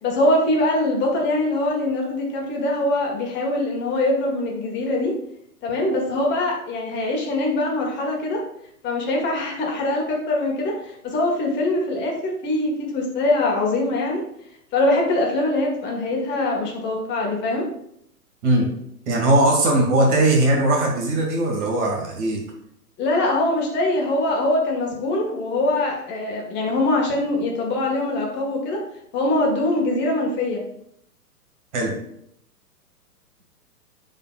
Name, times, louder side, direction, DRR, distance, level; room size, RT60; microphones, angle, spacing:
voice 1, 0.0-5.2 5.6-8.4 8.8-14.2 14.7-17.6 23.0-28.8 29.1-30.6, left 2 dB, 25° left, -1 dB, 1.5 m, -23 dB
voice 2, 18.4-18.7 19.1-22.4 31.7-32.0, right 1 dB, 45° right, -1 dB, 1.9 m, -19 dB
11.0 x 4.0 x 2.4 m, 0.73 s
figure-of-eight pair, 115°, 47 cm